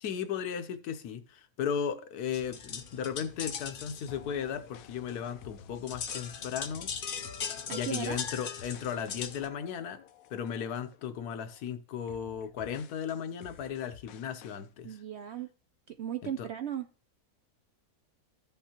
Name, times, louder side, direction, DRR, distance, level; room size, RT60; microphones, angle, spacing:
voice 1, 0.0-6.9 7.7-10.0 10.3-15.0 16.2-16.5, left 8 dB, 90° left, 1.3 m, -36 dB
sound 1, 2.3-9.5, left 6 dB, 50° left, 0.6 m, -40 dB
sound 2, 4.1-11.0 11.4-11.7 12.1-14.7, left 10 dB, 75° left, 1.0 m, -54 dB
voice 2, 7.7-8.2 14.8-15.5 15.9-16.9, right 9 dB, 70° right, 0.6 m, -36 dB
14.0 x 5.4 x 2.9 m
omnidirectional pair, 1.6 m